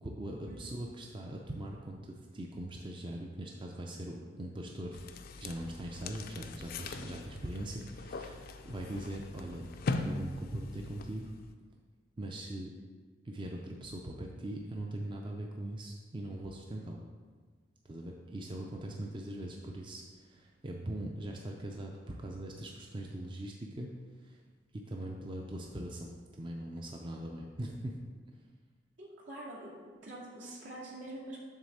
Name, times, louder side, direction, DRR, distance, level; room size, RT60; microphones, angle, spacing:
voice 1, 0.0-9.6 10.0-11.4 12.2-12.7 13.2-17.0 17.8-23.9 24.2-24.4 24.7-28.0, right 1 dB, 25° right, 0 dB, 0.5 m, -41 dB
sound 1, 4.9-11.5, left 3 dB, 50° left, 0.4 m, -40 dB
voice 2, 29.0-31.4, right 1 dB, 80° right, -6 dB, 2.1 m, -45 dB
7.4 x 3.5 x 6.4 m, 1.5 s
head